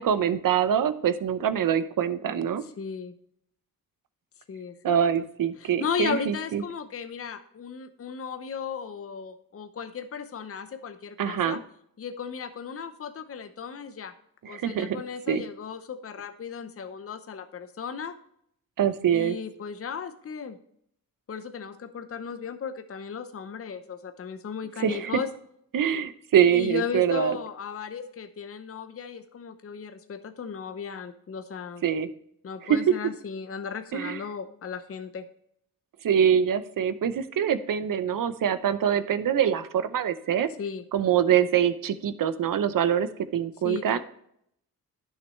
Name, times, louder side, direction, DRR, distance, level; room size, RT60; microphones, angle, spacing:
voice 1, 0.0-2.6 4.8-6.6 11.2-11.6 14.5-15.0 15.3-15.4 18.8-19.4 24.8-25.1 25.7-27.3 31.8-32.1 32.7-32.8 33.9-34.2 36.0-40.5 40.9-43.1 43.3-44.0, right 9 dB, 65° right, 12 dB, 0.8 m, -24 dB
voice 2, 2.6-3.1 4.5-5.3 5.6-11.6 12.0-14.1 14.5-18.1 19.1-20.6 21.3-25.3 26.5-31.8 32.4-35.3 40.6-40.8 43.6-44.0, left 6 dB, 40° left, 9 dB, 0.8 m, -36 dB
11.0 x 6.6 x 3.1 m, 0.71 s
cardioid pair, 70°, 35 cm